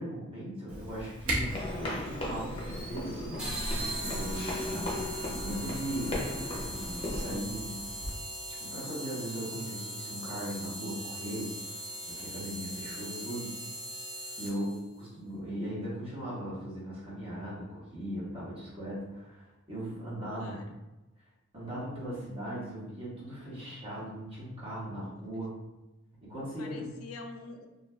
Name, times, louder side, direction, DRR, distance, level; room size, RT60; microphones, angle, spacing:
voice 1, 0.0-7.8 8.5-13.5 14.4-20.6 21.5-25.5 26.1-26.9, right 1 dB, 25° right, -7 dB, 1.1 m, -39 dB
Camera, 0.7-8.1, right 1 dB, 70° right, 0.9 m, -41 dB
sound 1, 1.4-7.3, left 1 dB, 25° left, 0.6 m, -36 dB
sound 2, 3.4-14.8, equal, 5° right, 0.8 m, -40 dB
voice 2, 20.3-20.7 25.1-25.2 26.6-27.7, left 3 dB, 80° left, 4 dB, 0.4 m, -46 dB
2.4 x 2.3 x 3.2 m, 1.0 s
head